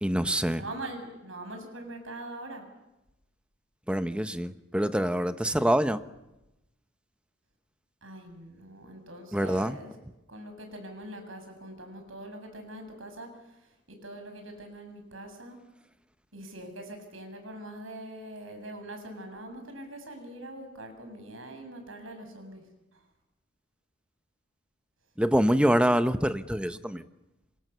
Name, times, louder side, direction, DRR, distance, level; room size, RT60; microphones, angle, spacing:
voice 1, 0.0-0.6 3.9-6.0 9.3-9.8 25.2-27.0, equal, 5° right, 10 dB, 0.9 m, -25 dB
voice 2, 0.6-2.6 8.0-9.9 10.3-13.3 13.9-15.6 16.3-22.6, right 1 dB, 85° right, 6 dB, 6.8 m, -43 dB
27.5 x 26.0 x 6.9 m, 0.96 s
head